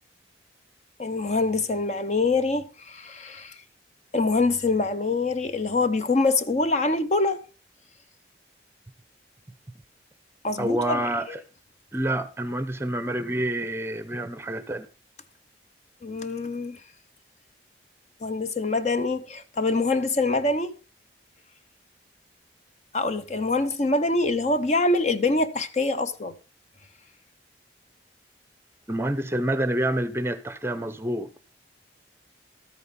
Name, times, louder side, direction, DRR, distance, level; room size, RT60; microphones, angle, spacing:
voice 1, 1.0-3.6 4.1-7.4 10.4-11.4 16.0-16.8 18.2-20.8 22.9-26.4, left 3 dB, 40° left, 0.7 m, -25 dB
voice 2, 10.6-11.4 11.9-14.9 28.9-31.3, right 1 dB, 15° right, 0.6 m, -27 dB
13.0 x 9.0 x 4.2 m
head